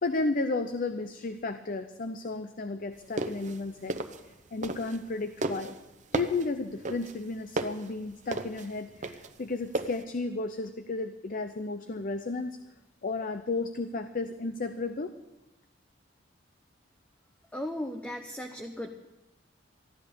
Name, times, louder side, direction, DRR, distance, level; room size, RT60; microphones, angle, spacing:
voice 1, 0.0-4.0 4.5-5.8 6.1-12.6 13.0-15.1, left 3 dB, 45° left, 9 dB, 0.6 m, -33 dB
sound 1, 3.0-5.1 5.4-10.0, right 2 dB, 40° right, 0.8 m, -34 dB
voice 2, 17.5-19.1, left 1 dB, 5° left, 4 dB, 0.8 m, -36 dB
14.5 x 11.0 x 6.7 m, 0.98 s
head